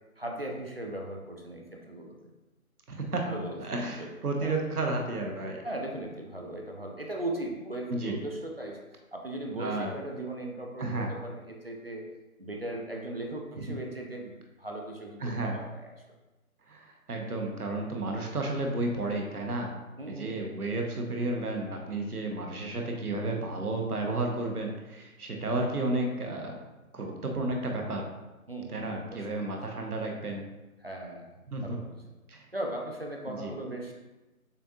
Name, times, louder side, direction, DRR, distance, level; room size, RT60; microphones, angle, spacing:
voice 1, 0.2-2.3 3.3-4.1 4.4-4.5 5.6-8.8 9.1-12.1 12.4-16.0 20.0-20.4 28.5-29.6 30.8-32.0 32.5-33.9, right 1 dB, 45° right, 1 dB, 0.5 m, -38 dB
voice 2, 2.9-3.3 3.6-5.7 7.9-8.2 9.5-9.9 10.8-11.1 13.5-13.7 15.2-15.6 16.7-19.7 20.1-26.6 26.9-28.1 28.7-30.4 31.5-31.8 32.3-32.5 33.3-33.5, right 2 dB, 80° right, 2 dB, 1.0 m, -32 dB
6.7 x 2.4 x 2.7 m, 1.1 s
figure-of-eight pair, 170°, 44 cm